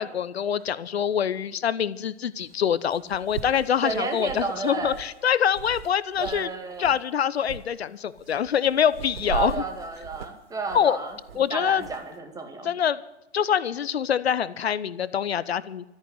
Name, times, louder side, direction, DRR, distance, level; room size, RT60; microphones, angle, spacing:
voice 1, 0.0-6.5 6.8-9.6 10.7-11.0 11.4-11.9 12.6-13.0 13.3-15.8, left 8 dB, 65° left, 17 dB, 0.9 m, -25 dB
sound 1, 0.6-0.7 2.5-2.6 2.9-6.5 6.7-7.0 7.4-7.7 8.2-12.0, right 6 dB, 60° right, 1.0 m, -39 dB
voice 2, 3.8-5.0 6.2-6.9 9.3-11.2 11.5-12.7, right 4 dB, 10° right, 5 dB, 2.2 m, -31 dB
13.5 x 9.0 x 9.8 m, 0.96 s
figure-of-eight pair, 110°, 34 cm